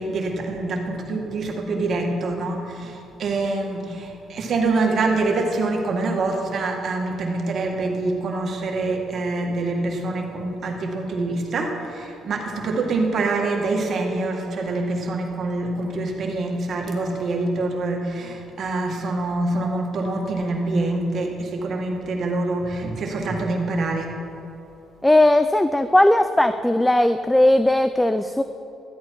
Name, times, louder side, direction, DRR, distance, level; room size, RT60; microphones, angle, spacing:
voice 1, 0.0-24.2, right 2 dB, 55° right, 2 dB, 1.9 m, -25 dB
voice 2, 25.0-28.4, left 1 dB, 10° left, 10 dB, 0.4 m, -17 dB
13.0 x 11.5 x 4.7 m, 2.7 s
cardioid pair, 85°, 0 cm